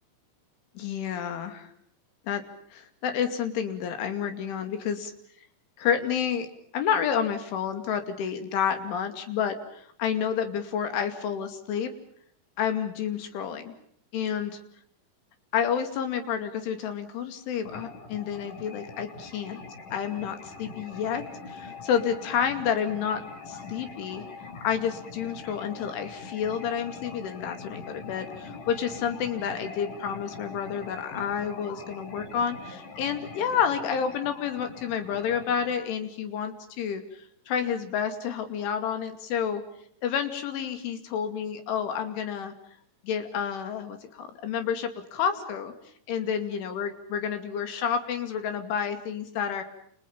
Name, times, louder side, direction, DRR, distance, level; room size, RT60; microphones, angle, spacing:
voice 1, 0.8-1.7 2.3-2.4 2.7-5.1 5.8-6.5 6.7-11.9 12.6-13.7 14.1-14.5 15.5-19.6 19.9-21.2 21.5-24.2 24.6-37.0 37.5-39.6 40.0-42.5 43.0-45.7 46.1-49.6, left 8 dB, 90° left, 8 dB, 5.0 m, -29 dB
sound 1, 17.7-35.8, left 4 dB, 45° left, 5.0 m, -43 dB
29.5 x 29.0 x 5.4 m, 0.67 s
omnidirectional pair, 5.4 m